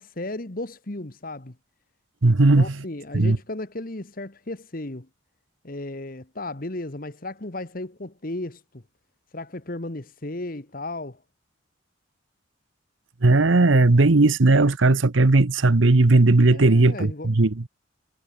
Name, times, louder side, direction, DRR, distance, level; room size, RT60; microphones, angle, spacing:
voice 1, 0.0-1.5 2.3-5.1 5.6-8.8 9.3-11.2 16.5-17.3, left 2 dB, 45° left, 1.5 m, -35 dB
voice 2, 2.2-2.8 3.1-3.4 13.2-17.7, right 2 dB, 80° right, 1.0 m, -17 dB
head